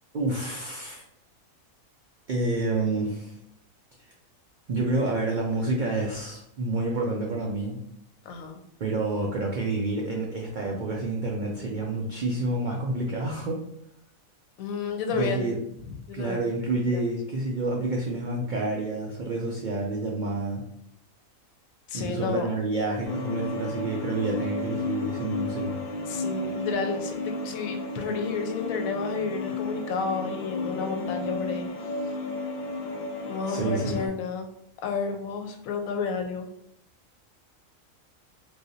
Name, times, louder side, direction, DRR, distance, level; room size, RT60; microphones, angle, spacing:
voice 1, 0.1-1.0 2.3-3.4 4.7-7.8 8.8-13.6 15.1-15.6 16.1-20.6 21.9-25.8 33.5-34.1, right 2 dB, 80° right, -1 dB, 0.4 m, -29 dB
voice 2, 8.2-8.6 14.6-15.6 15.9-17.0 21.9-22.5 26.1-31.7 33.2-34.5 34.8-36.5, left 5 dB, 90° left, 5 dB, 1.0 m, -31 dB
sound 1, 23.0-34.1, left 2 dB, 70° left, 1.0 m, -33 dB
3.3 x 2.6 x 2.6 m, 0.77 s
omnidirectional pair, 1.4 m